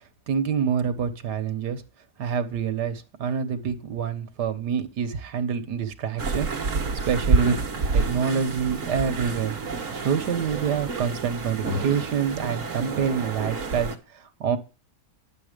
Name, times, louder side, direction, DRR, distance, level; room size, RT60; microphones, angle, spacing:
voice 1, 0.3-1.8 2.2-7.6 7.9-9.6 9.9-14.6, right 7 dB, 80° right, 9 dB, 1.8 m, -27 dB
sound 1, 6.2-14.0, right 4 dB, 50° right, 2.0 m, -28 dB
11.0 x 7.2 x 5.2 m, 0.31 s
omnidirectional pair, 1.8 m